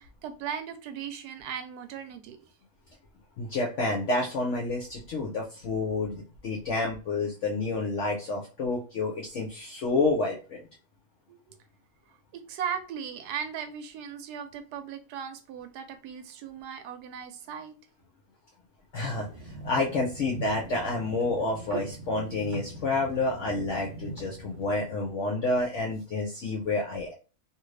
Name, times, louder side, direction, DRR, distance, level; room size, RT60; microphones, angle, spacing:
voice 1, 0.0-2.4 11.3-11.5 12.3-17.7, right 8 dB, 85° right, 8 dB, 1.1 m, -37 dB
voice 2, 3.4-10.6 18.9-27.1, left 2 dB, 60° left, -2 dB, 0.8 m, -29 dB
sound 1, 19.0-25.5, right 2 dB, 65° right, 1.1 m, -42 dB
2.7 x 2.5 x 3.2 m, 0.34 s
omnidirectional pair, 1.7 m